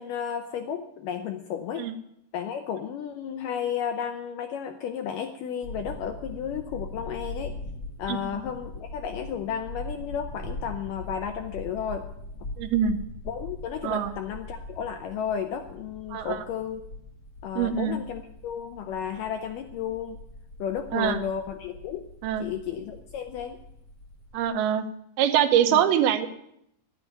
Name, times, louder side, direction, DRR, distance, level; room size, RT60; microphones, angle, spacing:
voice 1, 0.0-1.9 2.3-7.6 8.0-12.1 13.3-16.8 17.4-20.2 20.6-22.1 22.4-23.6 25.7-25.8, left 8 dB, 75° left, 6 dB, 2.1 m, -33 dB
sound 1, 5.6-24.5, left 1 dB, 45° left, 1.5 m, -41 dB
voice 2, 12.6-13.0 13.8-14.1 16.1-16.4 17.6-18.0 20.9-21.2 22.2-22.4 24.3-24.8 25.2-26.3, right 9 dB, 80° right, 8 dB, 2.7 m, -23 dB
11.5 x 9.3 x 9.3 m, 0.76 s
omnidirectional pair, 4.6 m